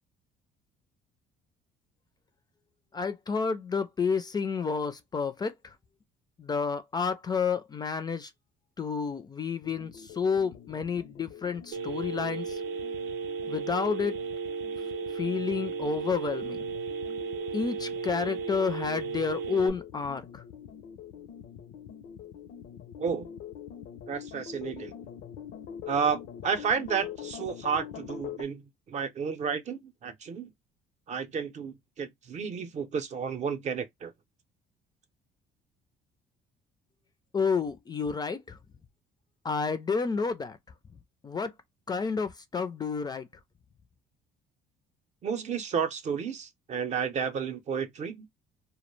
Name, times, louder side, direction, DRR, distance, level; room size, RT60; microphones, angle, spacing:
voice 1, 2.9-5.5 6.4-8.3 8.8-9.9 10.2-12.6 13.5-14.1 15.2-16.7 17.5-20.4 37.3-38.4 39.4-40.6 41.2-41.5 41.9-43.3, left 5 dB, 25° left, 0.3 m, -30 dB
sound 1, 9.6-28.4, left 9 dB, 80° left, 0.5 m, -45 dB
Telephone, 11.7-19.7, right 5 dB, 85° right, 0.6 m, -35 dB
voice 2, 23.0-23.3 24.1-24.9 25.9-28.6 28.9-30.5 31.1-34.1 45.2-48.3, right 6 dB, 45° right, 0.6 m, -31 dB
2.2 x 2.0 x 3.0 m
cardioid pair, 110°, 17 cm